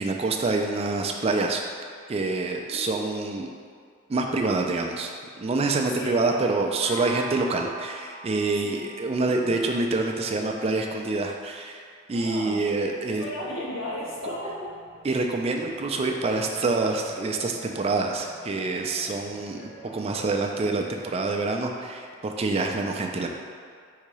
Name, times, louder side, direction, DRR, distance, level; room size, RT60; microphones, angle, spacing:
voice 1, 0.0-1.6 2.1-3.5 4.1-5.1 5.4-13.2 15.0-23.3, right 3 dB, 30° right, 2 dB, 0.3 m, -26 dB
voice 2, 2.7-3.0 5.9-7.2 8.6-8.9 9.4-9.6 12.1-12.7 13.2-14.8, left 1 dB, 75° left, -5 dB, 1.0 m, -35 dB
sound 1, 6.8-10.7, right 2 dB, 90° left, 1.4 m, -41 dB
sound 2, 13.0-20.8, right 1 dB, 40° left, 1.3 m, -48 dB
4.0 x 2.8 x 4.7 m, 2.2 s
head